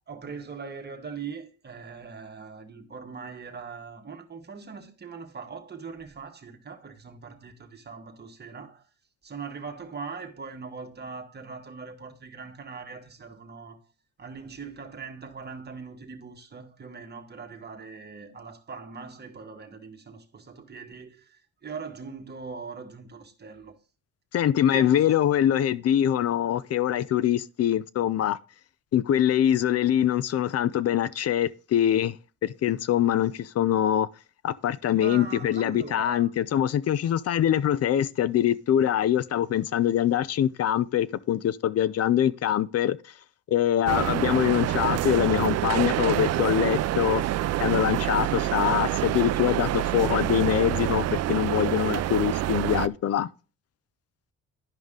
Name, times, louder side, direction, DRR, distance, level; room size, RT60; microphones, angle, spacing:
voice 1, 0.1-8.9 9.2-13.9 14.2-23.8 24.7-25.2 34.9-36.3, right 5 dB, 35° right, 1.4 m, -41 dB
voice 2, 24.3-28.4 28.9-32.2 32.4-34.1 34.4-43.0 43.5-47.2 47.6-53.3, left 11 dB, 55° left, 0.6 m, -24 dB
sound 1, 43.9-52.9, right 13 dB, 60° right, 0.4 m, -27 dB
11.0 x 5.4 x 3.7 m
cardioid pair, 90°, 30 cm